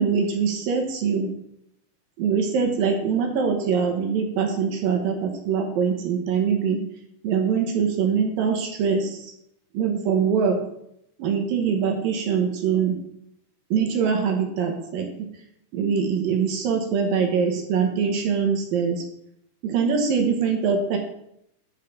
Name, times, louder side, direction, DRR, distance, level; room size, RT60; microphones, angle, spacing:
voice 1, 0.0-1.3 2.2-6.8 7.2-9.2 9.7-10.6 11.2-13.0 13.7-15.1 15.7-19.0 19.6-21.0, right 6 dB, 65° right, 3 dB, 2.7 m, -23 dB
7.4 x 5.5 x 7.1 m, 0.77 s
omnidirectional pair, 4.7 m